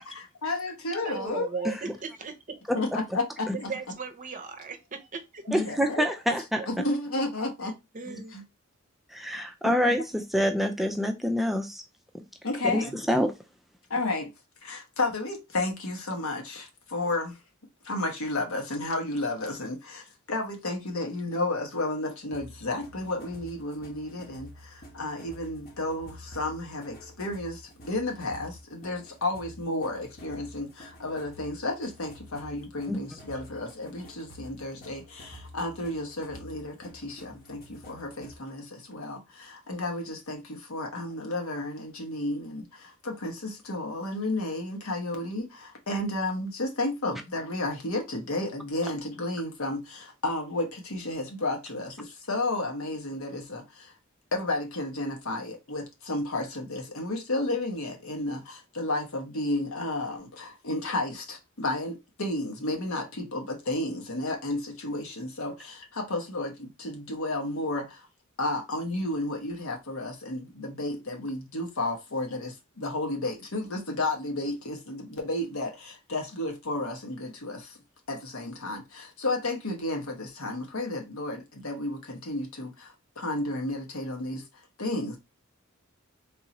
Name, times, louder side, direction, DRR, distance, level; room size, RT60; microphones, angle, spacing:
voice 1, 0.1-1.5 2.7-3.7 5.5-6.0 6.7-7.7 8.3-8.4 9.6-9.8 12.4-13.0 13.9-14.3 14.6-17.4 17.8-53.9 54.3-68.1 68.4-77.8 78.1-84.4 84.8-85.2, left 2 dB, 90° left, 1.2 m, -32 dB
voice 2, 1.0-2.8 3.5-5.5 6.5-6.7 7.6-8.4, right 5 dB, 40° right, 0.6 m, -38 dB
voice 3, 2.7-3.0 3.5-3.6 5.5-6.6 8.1-8.2 9.1-11.8 12.7-13.3 32.9-33.0, equal, ahead, 0.4 m, -26 dB
sound 1, 22.3-38.5, left 1 dB, 45° left, 1.0 m, -49 dB
3.7 x 2.7 x 2.9 m
head